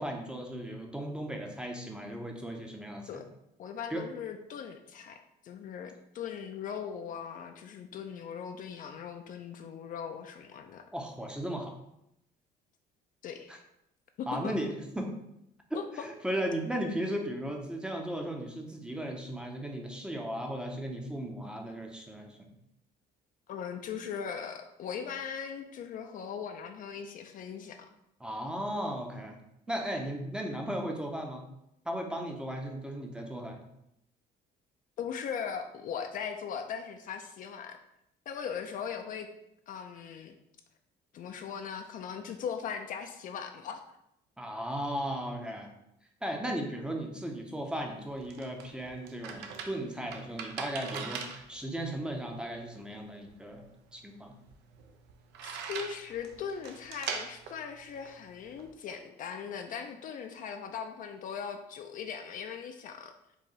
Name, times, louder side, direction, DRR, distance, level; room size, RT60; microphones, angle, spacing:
voice 1, 0.0-3.1 3.9-4.1 10.9-11.7 13.5-13.6 14.3-15.2 15.7-22.5 28.2-29.4 29.7-31.5 31.9-33.6 44.4-45.7 46.2-53.6 53.9-54.3, right 1 dB, 5° right, 2 dB, 0.6 m, -36 dB
voice 2, 3.6-5.2 5.4-10.9 13.2-13.6 14.2-14.5 15.7-15.8 23.5-27.9 35.0-37.8 38.3-39.3 39.7-40.3 41.1-43.8 55.4-63.1, left 7 dB, 55° left, 6 dB, 0.4 m, -39 dB
sound 1, 47.8-58.7, right 6 dB, 85° right, 0.5 m, -43 dB
4.6 x 2.6 x 3.1 m, 0.81 s
cardioid pair, 110°, 17 cm